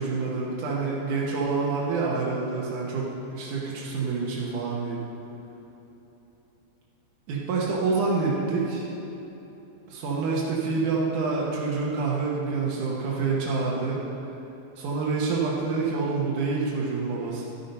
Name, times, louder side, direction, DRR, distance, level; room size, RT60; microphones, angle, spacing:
voice 1, 0.0-5.0 7.3-8.9 9.9-14.0 14.8-17.5, right 4 dB, 80° right, -5 dB, 1.8 m, -27 dB
13.0 x 8.5 x 5.5 m, 3.0 s
omnidirectional pair, 5.4 m